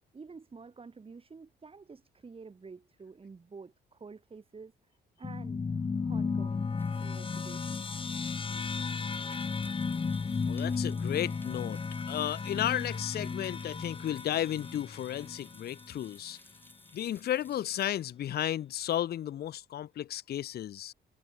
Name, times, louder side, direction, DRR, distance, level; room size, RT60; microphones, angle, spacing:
voice 1, 0.1-4.7 5.2-6.6 7.0-8.0, right 4 dB, 30° right, 1.6 m, -49 dB
sound 1, 5.2-16.0, left 5 dB, 25° left, 1.0 m, -34 dB
sound 2, 6.0-19.2, left 1 dB, 10° left, 3.7 m, -59 dB
voice 2, 8.5-8.8 10.5-11.8 12.1-16.4 16.9-20.9, left 11 dB, 55° left, 0.6 m, -33 dB
cardioid pair, 90°, 20 cm